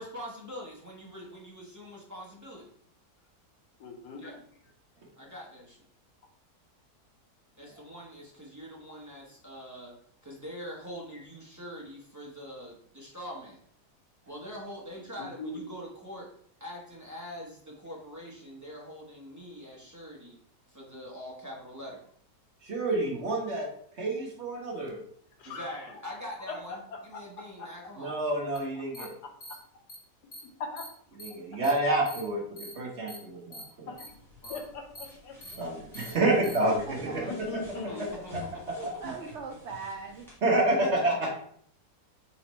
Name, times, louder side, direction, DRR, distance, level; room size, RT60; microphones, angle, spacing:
voice 1, 0.0-2.7 4.2-4.4 5.1-5.8 7.6-9.9 10.2-13.6 14.3-16.3 16.6-20.4 20.7-22.0 25.4-28.1 34.4-34.6 37.0-37.4 37.7-38.3 40.7-40.9 41.2-41.3, equal, 15° right, -4 dB, 0.6 m, -43 dB
voice 2, 3.8-4.4 11.1-11.2 15.2-15.6 25.4-26.1 26.5-27.7 28.1-28.2 28.7-29.1 30.6-30.9 31.5-31.6 33.9-34.2 34.5-35.7 37.1-38.0, left 3 dB, 75° left, 3 dB, 1.3 m, -41 dB
voice 3, 22.6-23.7 24.0-25.0 28.0-29.1 31.2-32.4 32.7-33.9 35.6-37.5 38.3-38.4 38.7-38.9 40.4-41.3, right 2 dB, 50° right, -1 dB, 1.0 m, -28 dB
sound 1, 28.6-28.7 28.9-29.1 29.4-29.5 29.9-30.0 30.3-30.4 30.8-30.9 31.2-31.3 31.6-31.7 32.1-32.2 32.6-32.7 33.1-33.2 33.5-33.6 34.0-34.1 34.4-34.6 35.0-35.1 35.4-35.5 35.9-36.1 36.4-36.6, equal, 35° left, 1.3 m, -43 dB
sound 2, 33.9-40.4, left 1 dB, ahead, 1.5 m, -50 dB
voice 4, 36.7-37.3 38.8-40.3 41.0-41.3, right 4 dB, 70° right, 2 dB, 0.6 m, -40 dB
4.2 x 3.8 x 3.0 m, 0.62 s
omnidirectional pair, 1.8 m